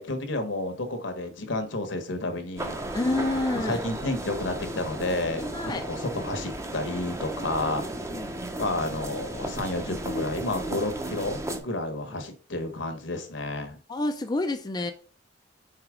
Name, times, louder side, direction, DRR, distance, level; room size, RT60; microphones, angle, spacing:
voice 1, 0.0-2.8 3.7-7.8 8.6-13.8, left 2 dB, 75° left, 7 dB, 1.2 m, -31 dB
sound 1, 2.6-11.6, right 1 dB, 15° right, 0.7 m, -34 dB
voice 2, 2.9-3.8 5.4-5.8 7.6-7.7 8.1-8.3 13.9-14.9, left 2 dB, 20° left, 6 dB, 0.4 m, -28 dB
4.8 x 4.0 x 4.9 m, 0.38 s
head